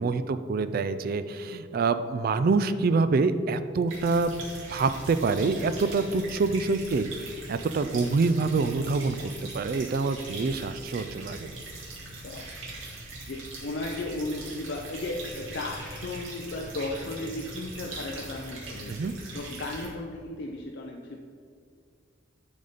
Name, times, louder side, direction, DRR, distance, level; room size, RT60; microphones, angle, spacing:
voice 1, 0.0-11.5 18.9-19.1, right 4 dB, 50° right, 12 dB, 0.3 m, -26 dB
sound 1, 3.9-19.9, right 2 dB, 85° right, 2.2 m, -41 dB
voice 2, 13.3-18.9 19.3-21.2, left 2 dB, 55° left, 1 dB, 0.5 m, -35 dB
10.5 x 4.0 x 5.0 m, 2.2 s
head